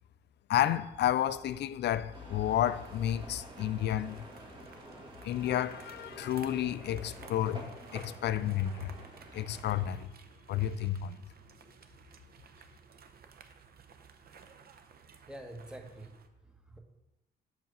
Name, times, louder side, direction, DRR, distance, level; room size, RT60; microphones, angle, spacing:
voice 1, 0.5-4.2 5.2-9.0 9.3-10.1 10.5-11.2, left 11 dB, 60° left, 0.4 m, -31 dB
sound 1, 2.0-16.3, right 6 dB, 50° right, 0.7 m, -57 dB
sound 2, 2.1-9.9, right 1 dB, 25° right, 1.5 m, -49 dB
voice 2, 15.3-16.8, right 1 dB, 5° right, 1.1 m, -47 dB
6.3 x 4.6 x 5.5 m
cardioid pair, 90°, 20 cm